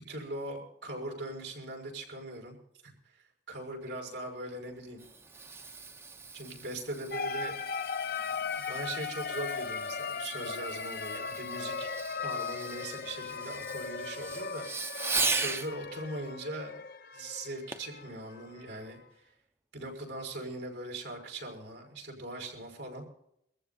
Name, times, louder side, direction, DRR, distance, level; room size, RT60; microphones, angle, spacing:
voice 1, 0.1-2.6 2.8-2.9 3.5-5.0 6.3-7.6 8.1-11.9 12.2-16.7 17.1-19.0 19.7-23.0, right 1 dB, 90° right, 0 dB, 5.5 m, -40 dB
Fireworks, 4.7-15.7 17.7-18.0 18.6-18.7, right 3 dB, 15° right, 0.6 m, -38 dB
sound 1, 7.1-18.9, left 5 dB, 55° left, 0.6 m, -38 dB
24.5 x 14.5 x 2.8 m, 0.74 s
head